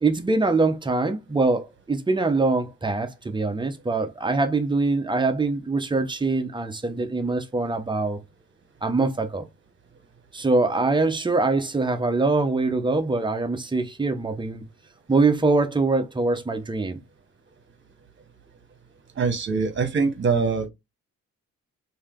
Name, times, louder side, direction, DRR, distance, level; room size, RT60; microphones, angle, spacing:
voice 1, 0.0-8.2 8.8-9.5 10.3-14.6 15.1-17.0, right 3 dB, 15° right, 0.7 m, -23 dB
voice 2, 19.2-20.7, right 5 dB, 40° right, 1.2 m, -23 dB
3.2 x 2.7 x 3.6 m
cardioid pair, 90°, 30 cm